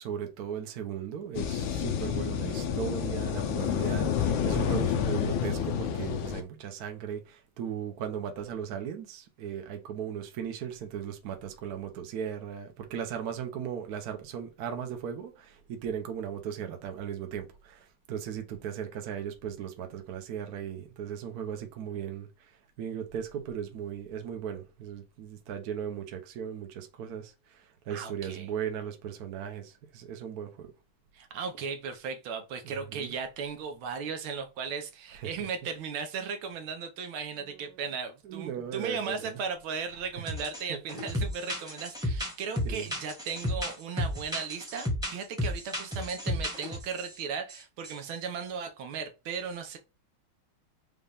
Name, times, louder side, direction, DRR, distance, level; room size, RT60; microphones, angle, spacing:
voice 1, 0.0-30.7 32.6-33.1 35.1-35.3 37.4-37.8 38.2-39.4 40.1-40.2 40.7-40.8 42.6-42.9, right 8 dB, 60° right, 1.2 m, -37 dB
sound 1, 1.3-6.4, left 8 dB, 75° left, 1.4 m, -29 dB
voice 2, 27.9-28.5 31.1-49.8, right 6 dB, 90° right, 1.6 m, -36 dB
sound 2, 40.3-40.6 40.9-47.1 47.5-47.6 47.8-48.0, left 1 dB, 5° right, 0.9 m, -33 dB
5.5 x 2.4 x 3.4 m
omnidirectional pair, 2.2 m